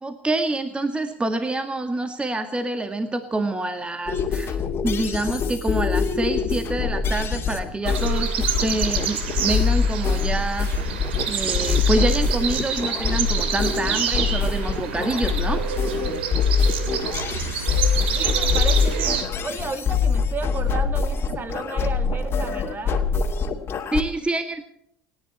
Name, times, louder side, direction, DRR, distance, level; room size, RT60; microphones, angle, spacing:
voice 1, 0.0-4.6 4.8-11.0 11.3-15.6 23.9-24.6, right 2 dB, 15° right, 7 dB, 1.9 m, -26 dB
sound 1, 4.1-24.0, left 5 dB, 40° left, 2.5 m, -24 dB
sound 2, 7.8-19.2, right 7 dB, 80° right, 2.7 m, -28 dB
voice 2, 18.1-23.1, right 4 dB, 35° right, 9 dB, 2.3 m, -33 dB
30.0 x 10.5 x 4.4 m, 0.74 s
hypercardioid pair, 65°, 6 cm